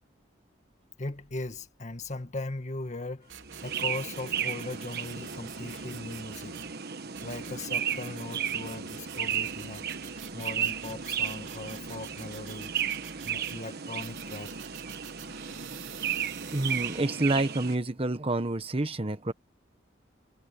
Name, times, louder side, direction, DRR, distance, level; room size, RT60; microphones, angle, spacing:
voice 1, 1.0-3.3 3.6-6.6 7.2-9.9 10.3-12.7 13.2-14.6, left 2 dB, 40° left, 1.7 m, -39 dB
sound 1, 3.3-6.7 7.1-13.6 14.0-17.0, right 8 dB, 90° right, 3.1 m, -47 dB
sound 2, 3.4-17.8, right 8 dB, 55° right, 1.3 m, -34 dB
voice 2, 16.5-19.3, right 2 dB, 30° right, 1.1 m, -28 dB
head